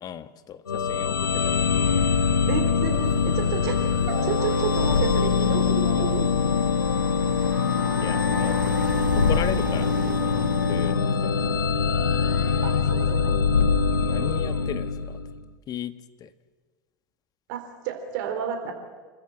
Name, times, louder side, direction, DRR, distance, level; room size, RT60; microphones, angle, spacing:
voice 1, 0.0-2.0 2.4-2.6 7.4-7.7 8.0-8.7 9.3-9.9 10.2-11.4 14.0-15.2 15.7-15.9 16.2-16.3, left 9 dB, 35° left, 12 dB, 1.4 m, -36 dB
sound 1, 0.7-15.4, left 6 dB, 90° left, 0.9 m, -23 dB
voice 2, 2.5-3.8 4.1-6.3 8.2-8.4 12.6-13.4 17.5-18.7, right 8 dB, 60° right, 5 dB, 4.0 m, -31 dB
sound 2, 2.9-10.9, right 5 dB, 80° right, 4.0 m, -36 dB
26.5 x 13.5 x 9.1 m, 1.4 s
hypercardioid pair, 85°, 11 cm